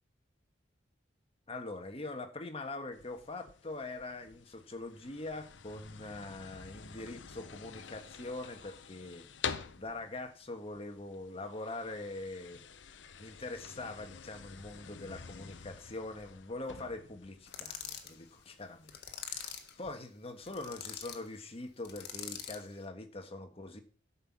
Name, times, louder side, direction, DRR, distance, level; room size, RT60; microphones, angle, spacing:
voice 1, 1.5-9.3 9.8-12.6 13.2-23.8, left 2 dB, 30° left, 7 dB, 1.4 m, -43 dB
sound 1, 2.9-19.9, left 6 dB, 80° left, 0.8 m, -48 dB
sound 2, 17.5-18.1 18.9-19.7 20.4-21.2 21.8-22.7, left 8 dB, 60° left, 1.6 m, -43 dB
12.0 x 5.7 x 7.4 m, 0.42 s
head